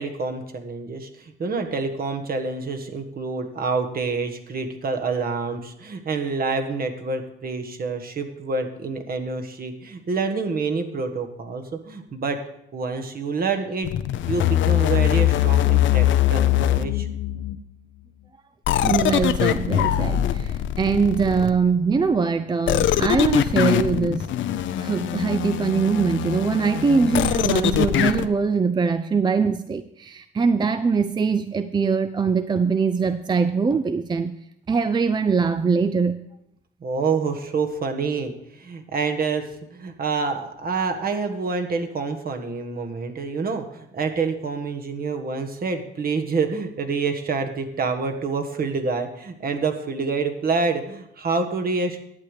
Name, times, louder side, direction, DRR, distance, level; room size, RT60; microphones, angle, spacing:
voice 1, 0.0-12.4 12.7-13.9 14.3-17.1 36.8-52.0, right 4 dB, 50° right, 5 dB, 1.4 m, -27 dB
sound 1, 13.8-17.6 18.7-21.7 22.7-28.3, left 12 dB, 70° left, 0.6 m, -22 dB
voice 2, 18.8-24.3 24.8-34.4 34.7-36.2, right 5 dB, 20° right, 11 dB, 0.4 m, -22 dB
11.5 x 8.2 x 5.0 m, 0.79 s
cardioid pair, 90°, 20 cm